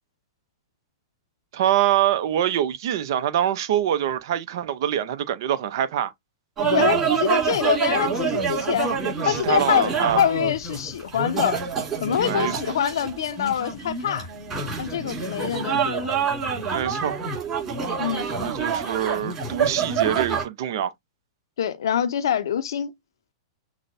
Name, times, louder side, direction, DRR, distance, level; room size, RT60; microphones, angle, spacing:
voice 1, 1.5-6.1 9.2-10.2 12.2-12.7 16.7-17.2 18.2-20.9, right 11 dB, 60° right, 0.6 m, -25 dB
sound 1, 6.6-20.4, right 6 dB, 20° right, 2.7 m, -26 dB
voice 2, 6.7-8.9 9.2-11.6 12.0-14.3 14.8-16.1 18.0-18.3 21.6-22.9, left 9 dB, 75° left, 0.5 m, -25 dB
6.1 x 2.2 x 2.5 m
hypercardioid pair, 115°, 2 cm